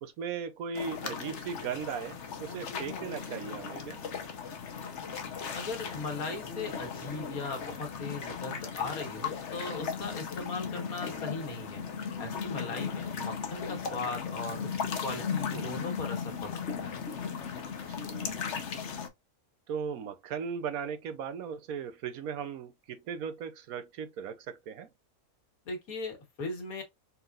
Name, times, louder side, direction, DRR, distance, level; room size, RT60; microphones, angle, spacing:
voice 1, 0.0-4.1 15.5-15.8 17.9-18.6 19.7-24.9, right 6 dB, 80° right, 1.2 m, -38 dB
sound 1, 0.7-19.1, left 6 dB, 55° left, 1.1 m, -37 dB
voice 2, 5.5-11.8 12.2-14.7 15.0-17.0 25.7-26.8, left 3 dB, 80° left, 1.9 m, -38 dB
4.2 x 3.8 x 2.4 m
omnidirectional pair, 1.5 m